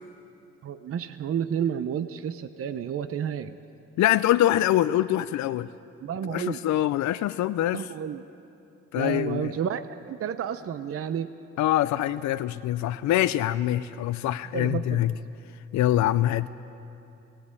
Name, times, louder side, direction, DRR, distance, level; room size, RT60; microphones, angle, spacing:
voice 1, 0.6-3.6 6.0-6.6 7.7-8.3 8.9-11.3 14.5-15.1, right 8 dB, 50° right, 11 dB, 0.7 m, -31 dB
voice 2, 4.0-5.7 6.3-7.9 8.9-9.5 11.6-15.1 15.7-16.5, left 13 dB, 70° left, 13 dB, 0.5 m, -24 dB
18.0 x 18.0 x 8.8 m, 2.7 s
cardioid pair, 90°, 30 cm